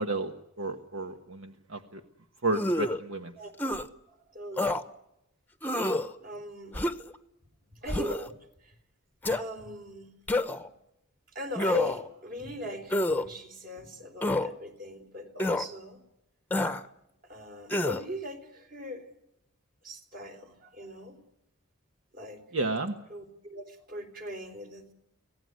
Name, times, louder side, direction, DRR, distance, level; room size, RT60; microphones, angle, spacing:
voice 1, 0.0-2.0 2.4-3.3 22.5-23.0, right 2 dB, 70° right, 6 dB, 1.3 m, -32 dB
sound 1, 2.5-3.0 3.6-3.8 4.6-4.8 5.6-6.1 6.7-7.1 7.9-8.3 9.2-9.4 10.3-10.7 11.5-12.1 12.9-13.2 14.2-14.5 15.4-15.6 16.5-16.8 17.7-18.0, left 1 dB, 10° left, 1.0 m, -28 dB
voice 2, 4.1-4.8 6.2-6.8 7.8-8.3 8.6-8.7 9.3-10.1 10.5-10.7 11.3-16.0 17.2-19.1 19.8-21.2 22.1-22.4 23.1-24.9, left 1 dB, 45° right, 5 dB, 3.9 m, -40 dB
25.5 x 18.0 x 9.5 m, 0.85 s
head